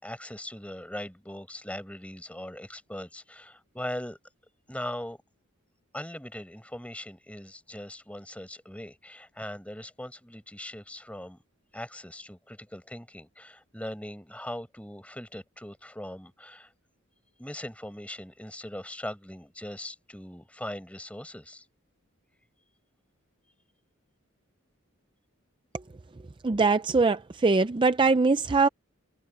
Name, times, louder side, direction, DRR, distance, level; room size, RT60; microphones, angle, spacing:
voice 1, 0.0-4.2 4.7-5.2 5.9-11.4 11.7-16.7 17.4-21.7, left 1 dB, 5° left, 5.3 m, -40 dB
voice 2, 26.4-28.7, right 4 dB, 25° right, 0.4 m, -22 dB
head